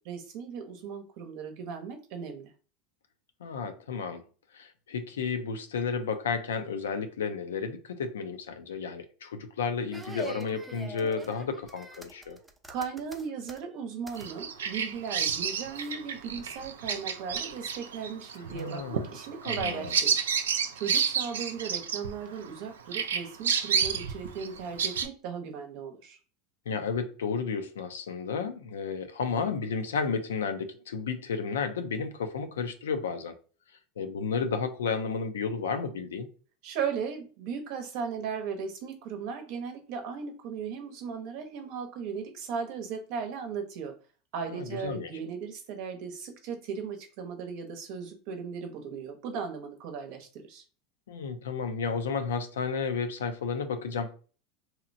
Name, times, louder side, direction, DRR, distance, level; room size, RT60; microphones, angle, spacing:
voice 1, 0.0-2.5 12.7-20.3 20.7-26.2 36.6-43.9 44.3-50.6, right 6 dB, 65° right, 0.7 m, -37 dB
voice 2, 3.4-4.2 4.5-12.4 18.5-19.1 19.4-20.0 26.7-33.3 34.0-36.3 44.4-45.1 51.1-54.2, left 5 dB, 85° left, 0.4 m, -32 dB
sound 1, 9.9-14.3 14.6-15.1 15.8-16.0 16.3-16.7 17.1-17.7 18.3-19.0, right 1 dB, 10° right, 0.5 m, -45 dB
Bird vocalization bird call bird song, 14.2-22.6 22.9-25.1, right 7 dB, 85° right, 0.3 m, -30 dB
2.8 x 2.0 x 2.6 m
hypercardioid pair, 95°, 0 cm